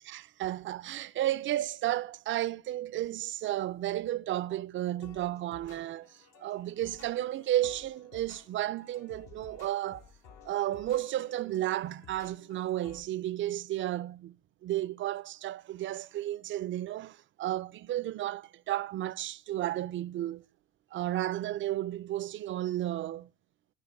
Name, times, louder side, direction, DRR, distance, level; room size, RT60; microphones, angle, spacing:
voice 1, 0.0-10.0 10.5-14.4 14.6-20.4 20.9-23.3, right 13 dB, 40° right, 0.4 m, -33 dB
sound 1, 5.0-13.0, left 6 dB, 65° left, 1.4 m, -55 dB
14.0 x 5.0 x 3.5 m
supercardioid pair, 75°, 30 cm